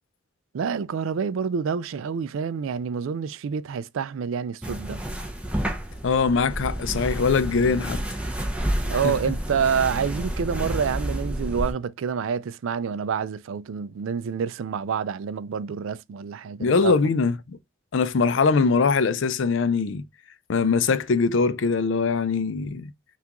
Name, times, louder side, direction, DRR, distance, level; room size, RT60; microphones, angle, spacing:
voice 1, 0.5-5.0 8.9-16.9, right 6 dB, 70° right, 0.3 m, -28 dB
sound 1, 4.6-11.7, right 1 dB, 5° right, 0.6 m, -30 dB
voice 2, 6.0-8.0 9.0-9.3 16.6-17.6 17.9-20.0 20.5-22.9, left 4 dB, 60° left, 0.4 m, -22 dB
5.7 x 2.4 x 2.9 m
head